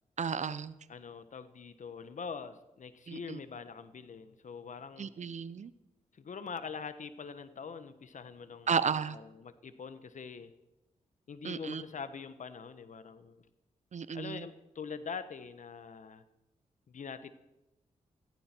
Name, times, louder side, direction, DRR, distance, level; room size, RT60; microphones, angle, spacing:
voice 1, 0.2-0.7 3.1-3.4 5.0-5.7 8.7-9.2 11.4-11.8 13.9-14.4, right 6 dB, 60° right, 16 dB, 0.8 m, -33 dB
voice 2, 0.9-5.1 6.2-10.5 11.3-13.5 14.1-16.2 16.9-17.3, left 5 dB, 65° left, 12 dB, 1.2 m, -44 dB
18.0 x 15.5 x 4.5 m, 0.96 s
cardioid pair, 55°, 14 cm